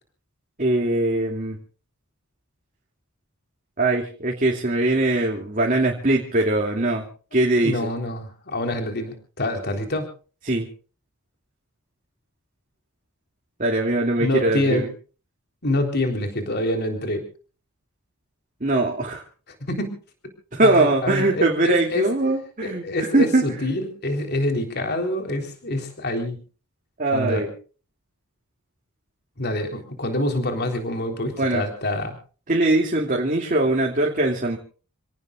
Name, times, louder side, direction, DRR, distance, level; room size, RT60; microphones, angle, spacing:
voice 1, 0.6-1.6 3.8-7.0 7.3-7.8 10.5-10.7 13.6-14.8 18.6-19.2 20.5-22.8 23.1-23.4 27.0-27.5 31.4-31.6 32.5-34.6, right 2 dB, 35° right, 0 dB, 2.7 m, -21 dB
voice 2, 7.6-10.1 14.2-14.9 15.6-17.3 19.6-19.9 20.6-22.1 22.6-26.4 27.1-27.4 29.4-32.2, left 1 dB, 50° left, 4 dB, 3.8 m, -26 dB
28.5 x 18.5 x 2.4 m, 0.39 s
head